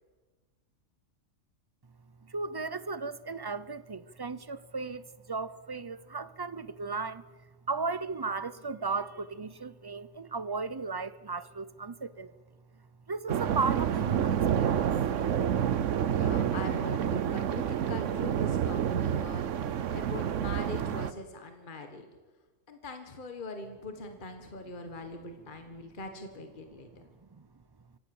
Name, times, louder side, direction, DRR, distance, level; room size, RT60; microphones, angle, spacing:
voice 1, 2.2-7.2 7.7-12.3 13.1-14.9 25.8-25.9 27.2-27.5, right 4 dB, 30° right, 16 dB, 0.4 m, -35 dB
sound 1, 13.3-21.1, right 9 dB, 70° right, 1.1 m, -29 dB
voice 2, 16.0-22.1 22.7-26.9, left 2 dB, 40° left, 6 dB, 1.7 m, -42 dB
25.5 x 17.0 x 7.1 m, 1.4 s
omnidirectional pair, 1.3 m